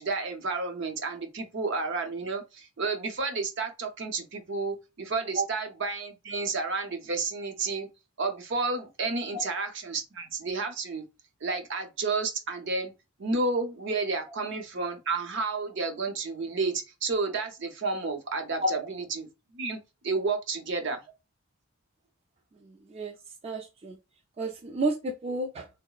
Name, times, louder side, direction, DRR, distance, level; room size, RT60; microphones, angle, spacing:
voice 1, 0.0-7.9 8.2-11.0 11.4-12.9 13.2-19.3 19.5-19.8 20.0-21.0, right 3 dB, 60° right, 0.7 m, -31 dB
voice 2, 22.5-23.2 23.4-24.0 24.4-25.7, right 1 dB, 30° right, 0.3 m, -31 dB
3.8 x 2.0 x 2.3 m
head